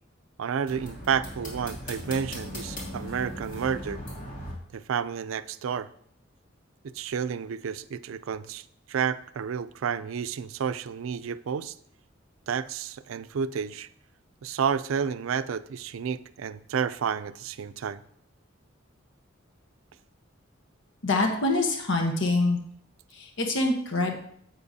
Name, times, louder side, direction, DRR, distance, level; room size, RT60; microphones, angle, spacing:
voice 1, 0.4-4.0 4.7-5.9 6.8-11.7 12.5-13.9 14.4-18.0, right 7 dB, 85° right, 14 dB, 0.4 m, -30 dB
sound 1, 0.7-4.5, equal, 40° left, 2.7 m, -38 dB
voice 2, 21.0-22.6 23.1-24.1, left 2 dB, 65° left, 3 dB, 1.0 m, -25 dB
10.0 x 7.7 x 2.7 m, 0.66 s
head